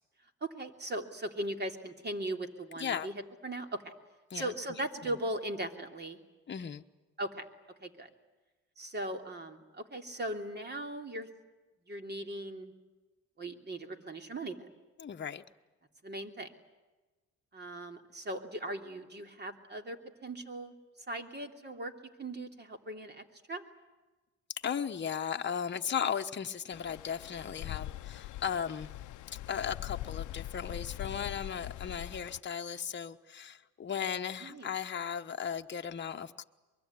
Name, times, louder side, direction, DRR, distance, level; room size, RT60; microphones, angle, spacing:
voice 1, 0.4-3.1 3.4-3.9 4.3-6.2 7.2-7.4 7.8-8.1 8.8-11.3 11.9-12.7 13.4-14.6 16.0-16.5 17.5-20.7 21.1-21.9 22.2-23.6 34.4-34.7, right 1 dB, 35° right, 5 dB, 3.0 m, -39 dB
voice 2, 6.5-6.8 15.0-15.4 24.6-28.9 29.3-36.4, left 7 dB, 35° left, 5 dB, 1.1 m, -36 dB
Stream, 26.7-32.4, left 14 dB, 75° left, 0.8 m, -42 dB
24.0 x 23.0 x 9.6 m, 1.2 s
cardioid pair, 90°, 30 cm